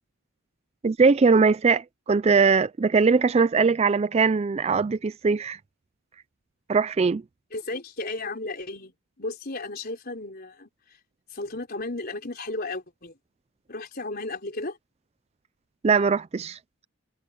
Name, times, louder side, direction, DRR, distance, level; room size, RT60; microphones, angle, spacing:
voice 1, 0.8-5.6 6.7-7.2 15.8-16.6, right 5 dB, 30° right, 0.3 m, -21 dB
voice 2, 7.5-11.0 11.3-13.2 13.7-14.8, left 2 dB, 45° left, 4.3 m, -34 dB
head